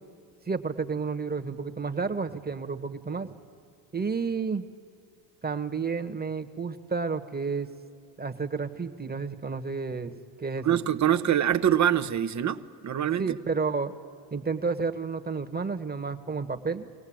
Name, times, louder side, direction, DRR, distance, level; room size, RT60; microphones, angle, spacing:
voice 1, 0.5-3.3 3.9-4.7 5.4-7.7 8.2-10.8 13.2-13.9 14.3-16.9, right 4 dB, 20° right, 7 dB, 1.5 m, -31 dB
voice 2, 10.6-13.3, right 10 dB, 35° right, 10 dB, 0.9 m, -24 dB
23.5 x 17.5 x 8.9 m, 2.5 s
supercardioid pair, 75°, 48 cm